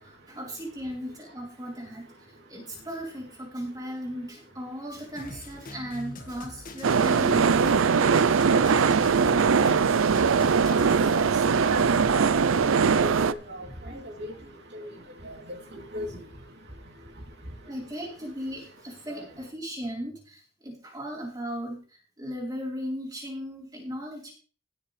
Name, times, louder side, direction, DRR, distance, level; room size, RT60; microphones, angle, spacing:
voice 1, 0.0-7.7 13.8-14.1 14.4-14.9 17.7-24.3, equal, 20° right, -3 dB, 4.0 m, -37 dB
Drum kit, 5.2-11.1, left 2 dB, 45° left, 1.6 m, -43 dB
sound 1, 6.8-13.3, right 5 dB, 80° right, 0.5 m, -21 dB
voice 2, 11.0-12.4 13.0-13.7 14.2-14.3 15.2-15.4 15.7-16.1, right 1 dB, 55° right, 2 dB, 3.0 m, -35 dB
18.5 x 7.3 x 3.3 m, 0.38 s
head